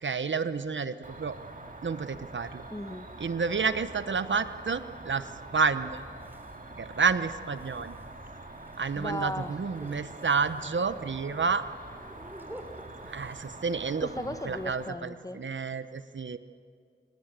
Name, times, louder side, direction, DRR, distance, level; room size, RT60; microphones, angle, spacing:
voice 1, 0.0-1.4 1.8-2.6 3.2-6.0 6.8-8.0 8.8-11.6 13.0-16.4, right 5 dB, 70° right, 12 dB, 0.9 m, -30 dB
Cricket, 1.0-14.9, right 2 dB, 45° right, 2.1 m, -45 dB
voice 2, 2.7-3.1 8.9-9.5 14.0-15.4, left 1 dB, 15° left, 10 dB, 1.2 m, -36 dB
sound 1, 5.9-14.2, equal, 10° right, 3.6 m, -51 dB
26.0 x 19.0 x 7.5 m, 2.1 s
cardioid pair, 50°, 20 cm